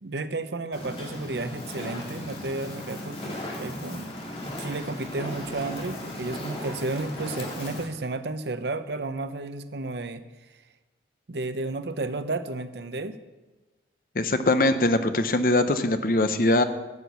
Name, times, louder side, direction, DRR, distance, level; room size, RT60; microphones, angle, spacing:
voice 1, 0.0-4.1 4.6-10.2 11.3-13.1, right 2 dB, 70° right, 10 dB, 0.8 m, -32 dB
Fire, 0.7-7.8, left 1 dB, 35° left, 2.3 m, -36 dB
voice 2, 14.2-16.6, left 2 dB, 50° left, 9 dB, 0.8 m, -22 dB
12.0 x 6.1 x 8.3 m, 1.2 s
head